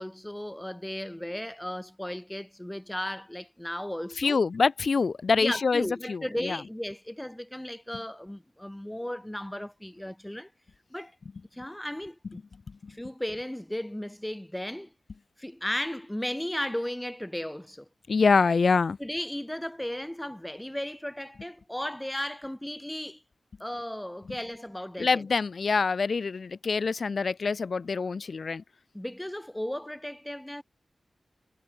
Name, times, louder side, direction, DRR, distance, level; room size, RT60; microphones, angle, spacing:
voice 1, 0.0-4.4 5.4-10.5 10.9-11.1 11.5-12.4 12.9-14.9 15.4-17.9 19.0-23.2 23.6-25.3 28.9-30.6, left 1 dB, 10° left, 0.6 m, -35 dB
voice 2, 4.2-6.6 18.1-19.0 25.0-28.6, left 4 dB, 65° left, 0.7 m, -25 dB
wide cardioid pair, 75°, 0 cm